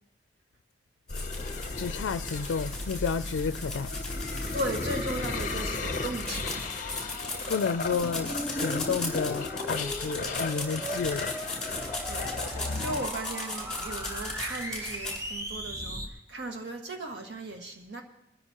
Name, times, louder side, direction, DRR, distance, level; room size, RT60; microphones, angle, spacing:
sound 1, 1.1-13.1, left 3 dB, 45° left, 0.7 m, -35 dB
sound 2, 1.1-15.2, left 3 dB, 5° left, 3.3 m, -38 dB
voice 1, 1.7-3.9 7.5-11.3, left 5 dB, 85° left, 0.4 m, -31 dB
voice 2, 4.5-6.7 12.0-18.0, right 1 dB, 70° right, 1.8 m, -37 dB
sound 3, 7.9-16.1, equal, 20° right, 1.0 m, -38 dB
21.5 x 13.5 x 2.9 m
head